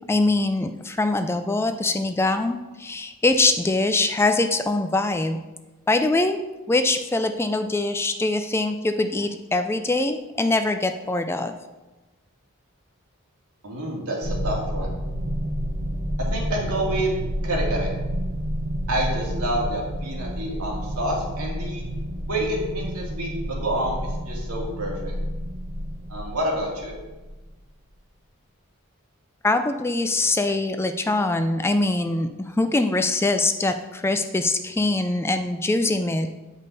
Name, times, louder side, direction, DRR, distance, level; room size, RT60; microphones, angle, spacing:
voice 1, 0.1-5.4 5.9-6.4 6.7-11.5 29.4-36.3, left 2 dB, 10° left, 8 dB, 0.3 m, -23 dB
voice 2, 13.6-14.9 16.3-17.2 17.4-17.9 18.9-21.9 22.3-25.1 26.1-26.9, right 1 dB, 85° right, -2 dB, 2.1 m, -28 dB
sound 1, 14.2-27.5, equal, 45° right, 1.0 m, -30 dB
8.3 x 5.4 x 4.0 m, 1.1 s
head